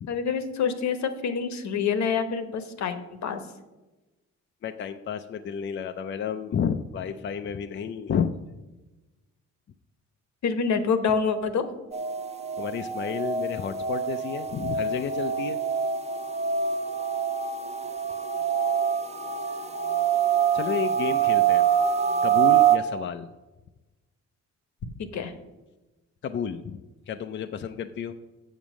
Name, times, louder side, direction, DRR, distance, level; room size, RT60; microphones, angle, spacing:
voice 1, 0.1-3.4 10.4-11.6 25.1-25.3, left 6 dB, 65° left, 9 dB, 1.1 m, -26 dB
voice 2, 4.6-8.3 12.6-15.6 20.5-21.7 22.2-23.3 26.2-28.1, left 7 dB, 40° left, 8 dB, 0.5 m, -31 dB
sound 1, 11.9-22.8, right 8 dB, 20° right, 0.8 m, -25 dB
7.2 x 7.1 x 6.2 m, 1.1 s
cardioid pair, 90°, 30 cm